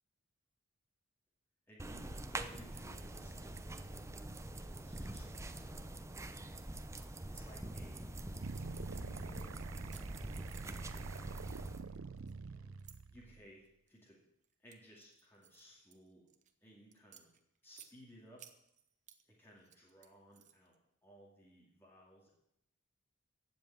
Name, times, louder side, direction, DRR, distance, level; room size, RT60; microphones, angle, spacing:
voice 1, 1.7-4.0 4.5-5.7 7.3-8.2 8.7-9.7 12.5-12.7 13.1-14.2 14.6-16.3 16.6-17.3 17.6-18.5 19.3-20.7 21.0-22.3, equal, 10° left, -5 dB, 2.4 m, -59 dB
sound 1, 1.8-11.8, right 1 dB, 15° right, 0.6 m, -45 dB
sound 2, 8.4-13.5, right 4 dB, 75° right, 0.6 m, -46 dB
sound 3, 9.3-9.5 9.9-11.1 11.4-13.0 13.6-14.0 14.4-16.5 16.9-17.9 18.4-19.2 19.6-20.8, right 10 dB, 35° right, 0.9 m, -60 dB
15.5 x 5.4 x 8.9 m, 0.80 s
head